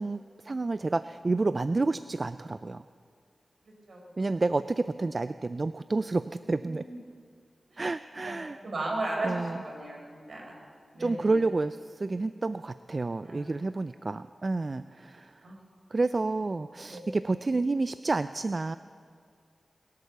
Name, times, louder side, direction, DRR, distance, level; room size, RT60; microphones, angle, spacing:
voice 1, 0.0-2.8 4.2-6.9 7.8-8.6 9.2-9.6 11.0-15.5 15.9-18.8, right 3 dB, 45° right, 13 dB, 0.3 m, -30 dB
voice 2, 6.7-7.0 7.7-7.8 8.2-8.4 8.6-10.5 10.9-11.3 13.2-13.5 15.4-15.6 16.9-17.0, right 2 dB, 70° right, -1 dB, 4.3 m, -35 dB
22.0 x 8.5 x 6.8 m, 2.2 s
wide cardioid pair, 65°, 0 cm